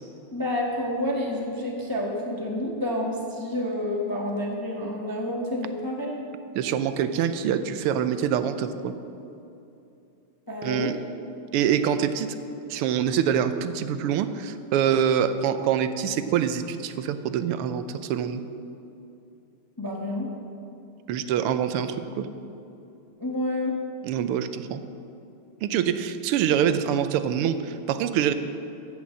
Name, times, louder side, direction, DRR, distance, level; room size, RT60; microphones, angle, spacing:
voice 1, 0.3-6.2 10.5-11.0 19.8-20.3 23.2-23.7, left 1 dB, 15° left, -1 dB, 0.7 m, -29 dB
voice 2, 6.6-8.9 10.6-11.0 11.5-12.4 12.7-18.4 21.1-22.3 24.0-24.8 25.6-28.3, right 8 dB, 85° right, 11 dB, 1.6 m, -25 dB
15.5 x 5.7 x 7.4 m, 2.7 s
omnidirectional pair, 2.4 m